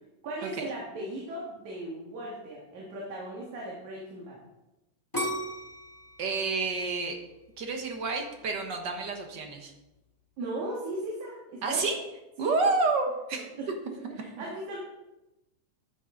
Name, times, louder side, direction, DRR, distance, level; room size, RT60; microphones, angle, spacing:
voice 1, 0.2-4.4 10.4-11.8 12.4-12.6 13.3-13.7 14.1-14.8, right 1 dB, 75° right, -4 dB, 3.3 m, -37 dB
sound 1, 5.1-8.0 8.6-9.0, equal, 10° left, 1.6 m, -36 dB
voice 2, 6.2-7.2 7.6-9.7 11.6-12.0 12.4-13.4 14.4-14.5, right 3 dB, 55° right, 3 dB, 1.3 m, -29 dB
11.5 x 9.1 x 3.9 m, 0.97 s
omnidirectional pair, 3.4 m